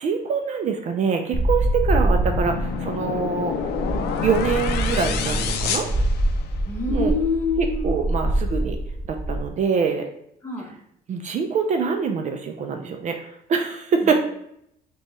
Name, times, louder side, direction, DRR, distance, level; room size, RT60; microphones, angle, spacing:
voice 1, 0.0-3.5 4.2-5.9 6.9-7.1 7.6-8.8 9.1-10.1 11.1-14.1, right 5 dB, 45° right, 5 dB, 0.4 m, -24 dB
sound 1, 1.3-9.5, right 1 dB, 30° right, 0.9 m, -25 dB
sound 2, 2.2-6.8, left 6 dB, 75° left, 0.5 m, -28 dB
voice 2, 6.7-7.9 10.4-10.7 14.0-14.1, left 3 dB, 15° left, 0 dB, 0.9 m, -26 dB
5.2 x 2.3 x 3.0 m, 0.75 s
cardioid pair, 110°, 17 cm